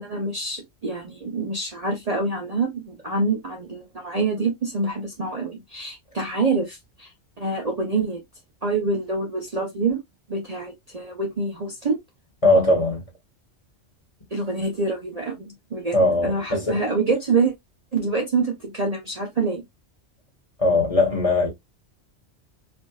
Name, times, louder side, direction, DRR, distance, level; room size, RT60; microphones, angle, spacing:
voice 1, 0.0-7.1 7.4-8.2 8.6-10.0 10.3-12.0 14.3-16.0 16.2-17.5 17.9-19.6, right 3 dB, 40° right, 0.8 m, -26 dB
voice 2, 12.4-13.0 15.9-16.8 20.6-21.5, left 2 dB, 30° left, 1.5 m, -19 dB
4.7 x 2.5 x 2.3 m
omnidirectional pair, 1.2 m